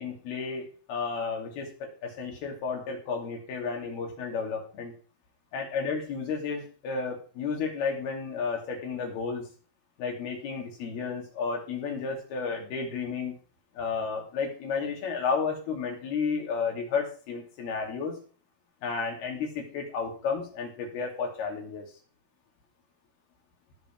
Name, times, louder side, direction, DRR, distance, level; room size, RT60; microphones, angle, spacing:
voice 1, 0.0-4.9 5.5-9.5 10.0-13.4 13.7-18.2 18.8-21.9, left 5 dB, 85° left, 1 dB, 4.7 m, -32 dB
17.5 x 7.2 x 4.6 m, 0.40 s
omnidirectional pair, 4.3 m